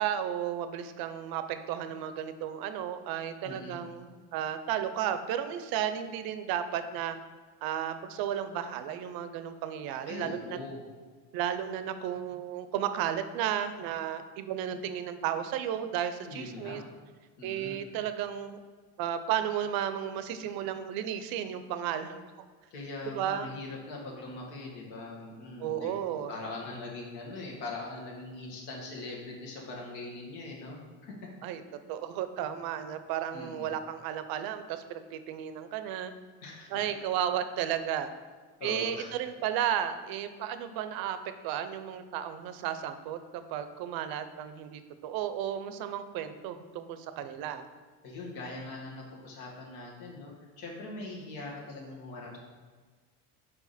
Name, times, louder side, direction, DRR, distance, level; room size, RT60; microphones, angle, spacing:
voice 1, 0.0-7.2 7.6-10.6 11.3-16.8 17.4-18.6 19.0-22.5 23.1-23.5 25.6-26.3 31.4-31.6 31.9-36.1 36.7-38.1 38.6-41.2 41.4-43.2 43.5-47.7, right 10 dB, 65° right, 10 dB, 0.5 m, -33 dB
voice 2, 3.4-3.8 10.1-10.8 16.3-16.8 17.4-17.8 22.7-31.2 33.3-33.8 36.4-36.8 38.6-39.1 48.0-52.4, left 2 dB, 85° left, -2 dB, 1.7 m, -41 dB
4.9 x 4.8 x 4.1 m, 1.4 s
cardioid pair, 145°, 39 cm